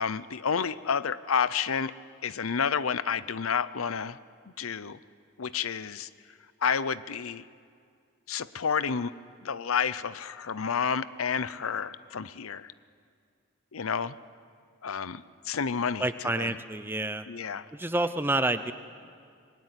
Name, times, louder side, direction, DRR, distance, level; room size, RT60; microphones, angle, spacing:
voice 1, 0.0-1.9 2.2-4.2 4.6-5.0 5.4-6.1 6.6-7.4 8.3-9.1 9.4-12.7 13.7-14.2 14.8-16.6 17.3-17.7, left 6 dB, 90° left, 16 dB, 0.7 m, -30 dB
voice 2, 16.0-17.3 17.7-18.7, right 2 dB, 10° right, 11 dB, 0.7 m, -28 dB
25.5 x 20.5 x 9.7 m, 2.2 s
head